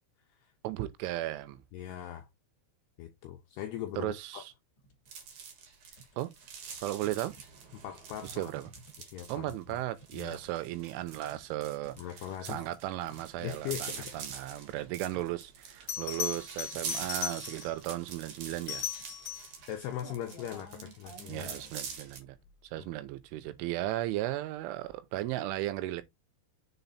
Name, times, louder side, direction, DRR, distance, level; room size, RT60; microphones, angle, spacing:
voice 1, 0.6-1.6 4.0-4.5 6.2-6.3 6.8-7.3 8.2-8.7 9.3-12.0 12.4-18.9 21.3-22.4 22.7-26.0, right 15 dB, 80° right, 3.2 m, -35 dB
voice 2, 1.7-2.3 3.0-4.4 7.7-8.5 9.0-9.8 10.1-10.4 12.0-12.7 13.4-14.1 19.7-21.5 22.8-22.9, left 11 dB, 85° left, 2.3 m, -40 dB
sound 1, 4.8-5.1 5.5-6.5 7.0-21.7, right 1 dB, 35° left, 2.4 m, -55 dB
sound 2, 5.1-22.2, right 6 dB, 65° right, 2.0 m, -45 dB
Bell, 15.3-15.4 15.9-17.8 18.5-19.6 22.3-22.5, left 10 dB, 65° left, 1.7 m, -38 dB
6.9 x 4.0 x 4.1 m
omnidirectional pair, 5.6 m